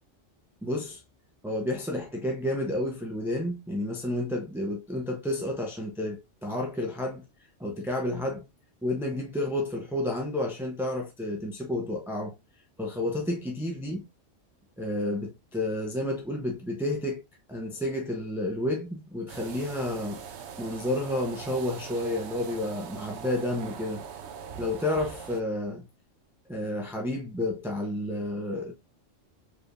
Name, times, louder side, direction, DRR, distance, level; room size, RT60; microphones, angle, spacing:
voice 1, 0.6-1.0 1.4-7.2 7.6-8.5 8.8-12.3 12.8-14.1 14.8-17.2 17.5-20.2 20.6-24.0 24.6-25.9 26.5-28.7, left 1 dB, 5° right, 0.6 m, -31 dB
sound 1, 19.3-25.4, right 7 dB, 65° right, 0.9 m, -42 dB
4.8 x 3.3 x 2.5 m
omnidirectional pair, 1.3 m